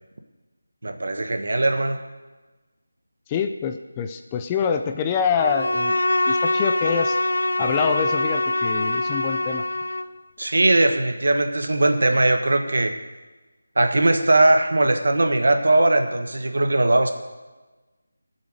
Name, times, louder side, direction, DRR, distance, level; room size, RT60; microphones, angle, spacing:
voice 1, 0.8-2.0 10.4-12.9 13.7-17.1, right 2 dB, 70° right, 6 dB, 1.5 m, -19 dB
voice 2, 3.3-6.0 6.3-7.2 7.6-9.6, left 6 dB, 15° left, 7 dB, 0.4 m, -25 dB
Bowed string instrument, 5.4-10.2, left 2 dB, 85° left, 0.7 m, -24 dB
16.0 x 7.3 x 6.5 m, 1.2 s
figure-of-eight pair, 170°, 0 cm